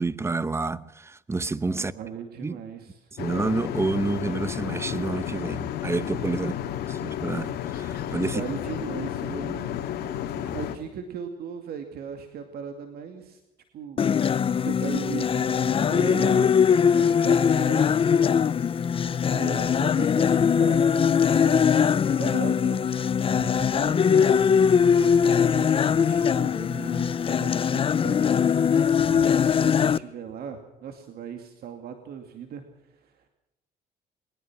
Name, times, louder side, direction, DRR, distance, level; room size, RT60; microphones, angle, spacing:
voice 1, 0.0-1.9 2.4-2.6 3.2-6.5 6.9-8.4 9.3-9.5 29.1-29.3, right 3 dB, 15° right, 0.9 m, -29 dB
voice 2, 1.7-3.1 6.4-6.6 8.2-9.8 10.5-13.4 13.7-14.0 14.6-18.1 19.0-28.6 29.1-32.6 32.9-33.1, right 7 dB, 65° right, 2.4 m, -38 dB
sound 1, 3.2-10.8, left 10 dB, 70° left, 2.0 m, -32 dB
sound 2, 14.0-30.0, left 7 dB, 35° left, 0.6 m, -21 dB
22.0 x 19.5 x 6.1 m
cardioid pair, 110°, 17 cm